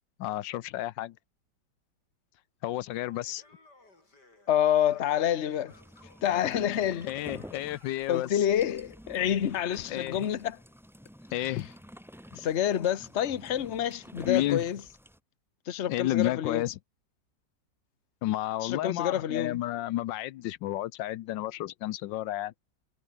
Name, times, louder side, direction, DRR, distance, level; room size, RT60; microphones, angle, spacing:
voice 1, 0.2-1.1 2.6-3.4 6.7-8.4 9.9-10.2 11.3-11.7 14.2-14.6 15.9-16.7 18.2-22.5, left 14 dB, 85° left, 1.4 m, -31 dB
Laughter, 2.8-8.4, left 2 dB, 65° left, 6.8 m, -59 dB
voice 2, 4.5-5.7 6.2-7.1 8.1-10.6 11.4-11.5 12.4-14.8 15.7-16.6 18.6-19.6, left 10 dB, 45° left, 1.2 m, -28 dB
sound 1, 5.7-15.2, equal, ahead, 2.1 m, -49 dB
omnidirectional pair, 1.9 m